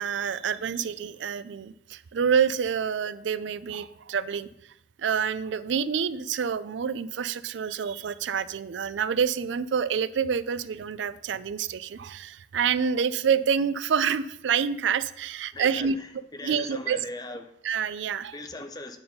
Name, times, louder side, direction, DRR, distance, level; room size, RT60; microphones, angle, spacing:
voice 1, 0.0-4.5 5.0-16.0 16.4-17.0 17.6-18.3, right 7 dB, 85° right, 16 dB, 0.4 m, -27 dB
voice 2, 15.5-17.5 18.3-19.0, left 1 dB, 20° left, 6 dB, 0.7 m, -39 dB
9.4 x 4.6 x 5.3 m, 0.75 s
head